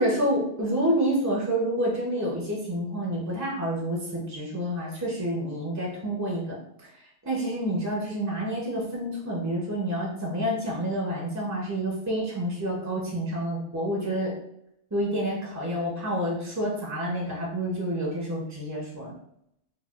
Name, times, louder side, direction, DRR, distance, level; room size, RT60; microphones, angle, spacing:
voice 1, 0.0-6.6 7.0-14.4 14.9-19.1, right 1 dB, 25° right, -3 dB, 0.4 m, -28 dB
4.0 x 2.3 x 2.4 m, 0.77 s
omnidirectional pair, 1.4 m